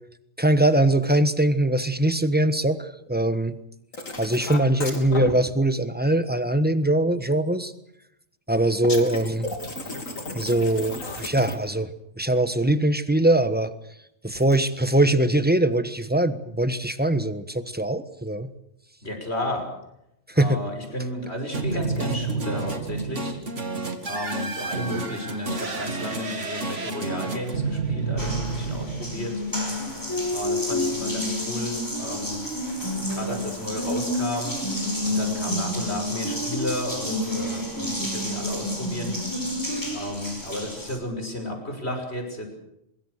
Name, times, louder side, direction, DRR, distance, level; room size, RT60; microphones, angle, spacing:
voice 1, 0.4-3.6 4.2-7.7 8.5-9.5 10.3-13.7 14.2-18.5 20.3-20.6 39.7-39.8, right 1 dB, 10° right, 11 dB, 1.2 m, -22 dB
sound 1, 3.9-5.3 8.8-11.8 14.3-14.6, left 2 dB, 85° left, 3.8 m, -34 dB
voice 2, 19.0-19.7 20.3-23.4 24.0-29.4 30.3-32.5 33.1-34.6 35.0-39.1 39.9-42.5, left 1 dB, 55° left, 4 dB, 6.1 m, -32 dB
sound 2, 21.5-29.8, right 4 dB, 65° right, 2.6 m, -30 dB
Water tap faucet, 28.2-41.0, left 1 dB, 15° left, 5.4 m, -29 dB
24.0 x 22.5 x 6.6 m, 0.80 s
omnidirectional pair, 1.3 m